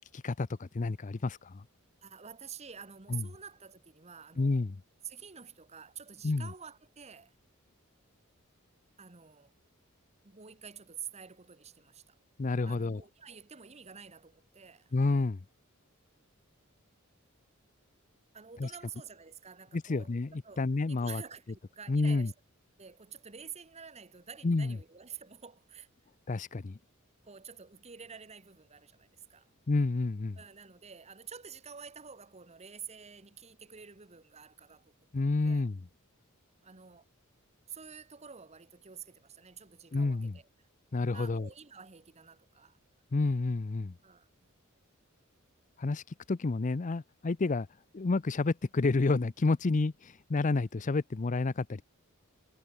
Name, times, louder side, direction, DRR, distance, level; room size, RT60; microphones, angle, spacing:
voice 1, 0.0-1.6 3.1-3.2 4.4-4.8 6.2-6.5 12.4-13.0 14.9-15.4 18.6-18.7 19.7-20.3 20.6-21.2 21.9-22.3 24.4-24.8 26.3-26.8 29.7-30.4 35.1-35.8 39.9-40.4 40.9-41.5 43.1-43.9 45.8-47.7 47.9-51.8, left 3 dB, 35° left, 0.5 m, -29 dB
voice 2, 2.0-4.6 5.0-7.3 9.0-9.5 10.2-12.2 12.7-14.9 18.3-20.1 20.4-22.3 22.8-25.9 27.2-29.5 30.4-34.9 35.4-35.7 36.6-37.0 37.7-40.4 41.1-42.8 44.0-44.3, right 7 dB, 30° right, 1.3 m, -49 dB
head